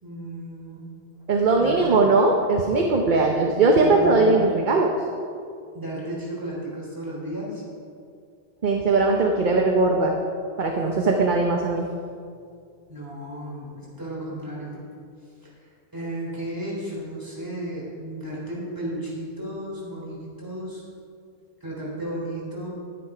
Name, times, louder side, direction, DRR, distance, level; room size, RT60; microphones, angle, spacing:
voice 1, 0.0-0.8 1.6-1.9 3.6-4.6 5.7-7.6 10.7-11.6 12.9-14.8 15.4-20.8 21.6-22.7, right 1 dB, 20° right, -6 dB, 3.6 m, -34 dB
voice 2, 1.3-4.9 8.6-10.1 10.6-11.9, right 3 dB, 50° right, 1 dB, 1.0 m, -20 dB
11.0 x 9.9 x 4.9 m, 2.3 s
omnidirectional pair, 1.1 m